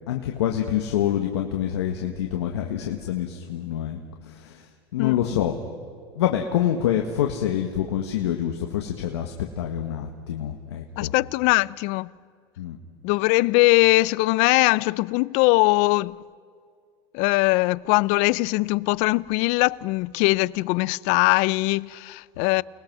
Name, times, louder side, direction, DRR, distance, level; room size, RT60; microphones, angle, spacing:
voice 1, 0.1-5.5 6.2-11.1 12.6-12.8, left 10 dB, 85° left, 1.6 m, -26 dB
voice 2, 11.0-12.1 13.0-16.2 17.1-22.6, left 23 dB, 60° left, 0.5 m, -21 dB
29.5 x 19.5 x 6.2 m
supercardioid pair, 110°, 14 cm